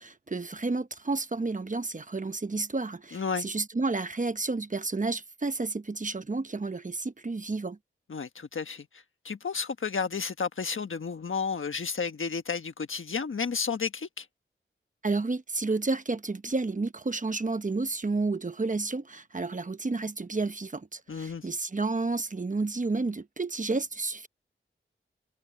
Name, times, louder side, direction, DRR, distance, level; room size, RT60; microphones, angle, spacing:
voice 1, 0.0-7.8 15.0-24.3, right 3 dB, 40° right, 1.0 m, -31 dB
voice 2, 3.1-3.5 8.1-14.3 21.1-21.5, left 5 dB, 75° left, 1.4 m, -32 dB
wide cardioid pair, 60°, 21 cm